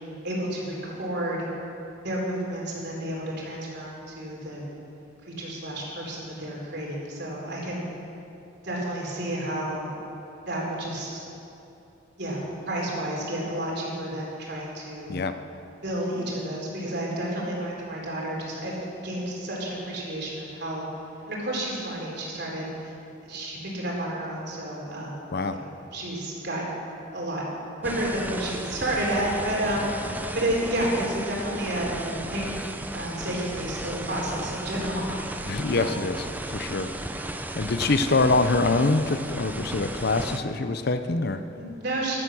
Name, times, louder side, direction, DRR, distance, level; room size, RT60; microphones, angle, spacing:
voice 1, 0.2-1.5 2.0-4.6 5.3-7.9 8.6-9.9 10.5-11.2 12.2-15.1 15.8-18.8 19.0-20.9 21.3-22.9 23.2-25.2 25.5-27.4 27.8-32.6 32.9-35.4 35.8-36.0 41.5-42.2, right 1 dB, 55° right, -3 dB, 3.8 m, -31 dB
sound 1, 27.8-40.4, right 1 dB, 10° right, 0.6 m, -35 dB
voice 2, 35.5-36.9 37.5-41.4, left 3 dB, 55° left, 9 dB, 0.6 m, -25 dB
14.0 x 12.5 x 6.3 m, 2.8 s
head